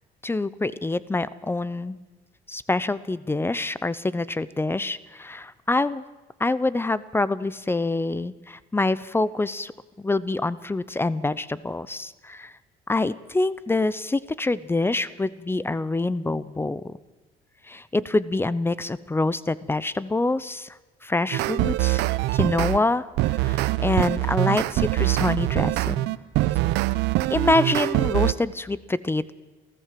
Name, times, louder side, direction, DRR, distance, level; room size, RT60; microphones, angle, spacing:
voice 1, 0.2-2.0 2.5-6.0 6.4-9.7 10.0-12.5 12.9-16.9 17.7-20.7 21.0-22.0 22.3-23.0 23.4-26.1 27.3-29.3, left 2 dB, 15° left, 18 dB, 0.7 m, -26 dB
sound 1, 21.3-22.8 23.2-28.3, right 18 dB, 90° right, 0.8 m, -23 dB
27.5 x 14.5 x 7.6 m, 1.2 s
cardioid pair, 110°, 17 cm